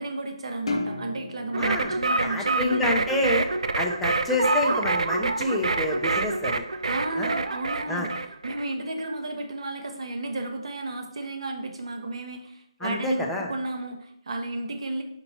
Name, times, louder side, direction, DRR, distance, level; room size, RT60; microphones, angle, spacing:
voice 1, 0.0-2.9 6.9-15.0, right 2 dB, 60° right, 4 dB, 0.8 m, -33 dB
sound 1, 0.7-3.2, left 2 dB, 65° left, 0.7 m, -34 dB
sound 2, 1.5-8.6, right 3 dB, 85° right, 0.3 m, -27 dB
voice 2, 1.6-1.9 2.2-3.4 3.8-6.6 7.2-7.3 7.9-8.1 12.8-13.5, left 2 dB, 5° left, -2 dB, 0.4 m, -28 dB
4.5 x 2.8 x 4.1 m, 0.75 s
hypercardioid pair, 165°, 3 cm